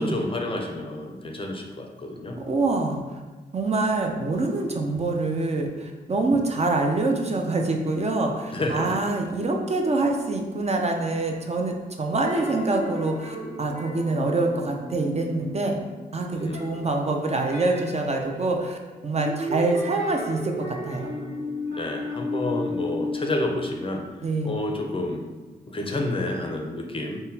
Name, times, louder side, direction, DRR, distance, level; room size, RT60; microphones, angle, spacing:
voice 1, 0.0-2.4 8.5-9.0 16.3-16.7 21.7-24.0 24.4-25.2 25.7-27.2, left 1 dB, 30° left, 2 dB, 0.5 m, -29 dB
voice 2, 2.5-3.2 3.5-15.8 16.1-18.8 19.0-21.1 24.2-24.6, right 2 dB, 40° right, 2 dB, 0.4 m, -25 dB
sound 1, 12.2-16.0 16.3-24.1, left 1 dB, 65° right, 1.1 m, -34 dB
3.7 x 2.1 x 2.7 m, 1.2 s
cardioid pair, 60°, 18 cm